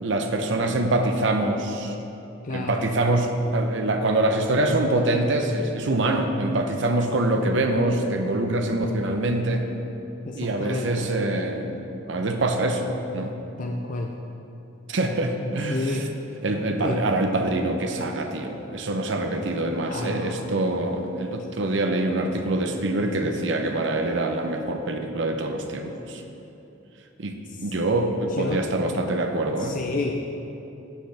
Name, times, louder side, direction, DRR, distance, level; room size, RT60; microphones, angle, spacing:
voice 1, 0.0-1.9 2.5-9.6 10.3-11.8 12.1-13.3 14.9-16.1 16.4-26.2 27.2-29.8, right 2 dB, 65° right, 4 dB, 0.7 m, -25 dB
voice 2, 2.4-2.8 10.3-11.1 13.6-14.1 15.7-16.0 16.8-17.0 19.9-20.4 28.3-28.6 29.6-30.1, left 2 dB, 40° left, 1 dB, 0.5 m, -30 dB
11.5 x 7.9 x 3.4 m, 3.0 s
head